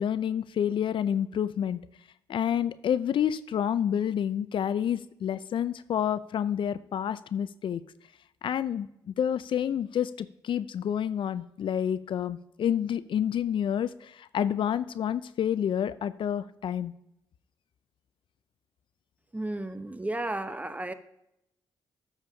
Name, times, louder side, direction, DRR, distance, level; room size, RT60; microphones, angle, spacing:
voice 1, 0.0-1.8 2.3-7.8 8.4-16.9, left 9 dB, 60° left, 15 dB, 0.4 m, -29 dB
voice 2, 19.3-20.9, right 1 dB, 15° right, 10 dB, 0.9 m, -33 dB
13.0 x 7.3 x 2.8 m, 0.80 s
supercardioid pair, 50°, 10 cm